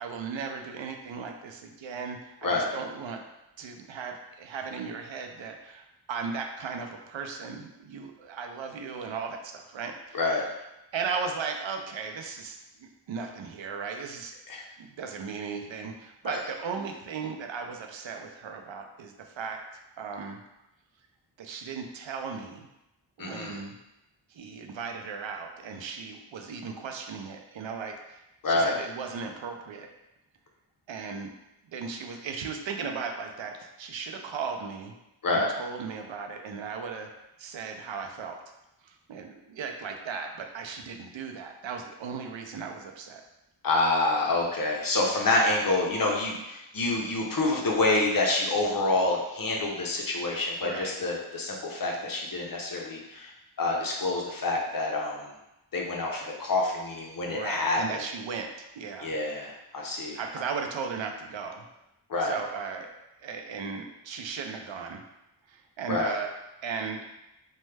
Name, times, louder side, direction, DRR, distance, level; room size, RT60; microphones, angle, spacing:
voice 1, 0.0-3.2 3.6-10.2 10.9-14.3 14.8-19.6 20.0-20.4 21.4-22.7 23.2-23.7 24.3-29.9 30.9-31.3 31.7-34.9 35.3-37.1 37.4-38.4 38.8-43.2 50.6-51.0 57.2-58.5 58.8-59.1 60.1-61.7 62.2-62.9 63.2-65.0 65.5-66.3 66.6-67.0, right 5 dB, 70° right, 4 dB, 0.5 m, -36 dB
voice 2, 23.2-23.6 28.4-28.7 35.2-35.5 43.6-53.3 53.6-55.3 55.7-58.0 59.0-60.2 62.1-62.3 65.9-66.1, left 2 dB, 45° left, -1 dB, 0.7 m, -27 dB
3.1 x 2.2 x 3.3 m, 0.91 s
wide cardioid pair, 65°, 47 cm